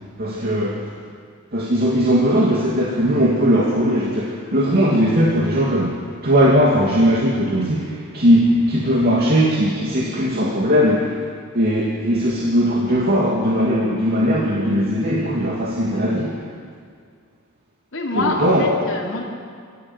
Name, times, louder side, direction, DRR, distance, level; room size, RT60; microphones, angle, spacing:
voice 1, 0.2-0.9 1.5-11.2 11.5-16.3 18.1-18.7, equal, 45° right, -4 dB, 2.8 m, -19 dB
voice 2, 17.9-19.2, left 2 dB, 60° left, -2 dB, 4.5 m, -25 dB
26.0 x 17.0 x 8.3 m, 2.1 s
head